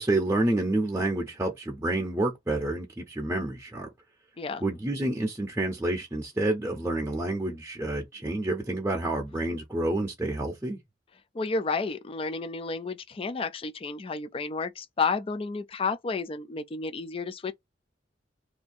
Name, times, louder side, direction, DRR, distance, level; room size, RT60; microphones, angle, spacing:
voice 1, 0.0-3.9 4.6-10.8, right 2 dB, 15° right, 0.7 m, -29 dB
voice 2, 11.3-17.5, left 4 dB, 30° left, 0.4 m, -31 dB
2.7 x 2.7 x 4.1 m
head